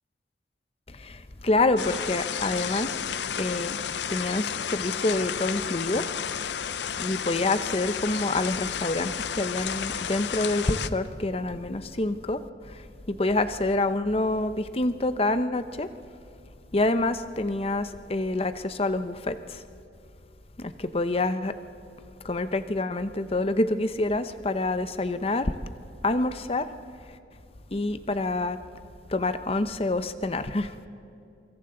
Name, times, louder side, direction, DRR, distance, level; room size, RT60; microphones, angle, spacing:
voice 1, 0.9-3.0 3.4-3.8 4.1-6.1 7.0-15.9 16.7-19.6 20.6-21.6 22.2-25.5 26.0-26.7 27.7-28.6 29.1-30.7, left 2 dB, 30° left, 11 dB, 0.7 m, -27 dB
sound 1, 1.8-10.9, left 8 dB, 70° left, 0.6 m, -32 dB
27.0 x 24.5 x 3.9 m, 2.7 s
head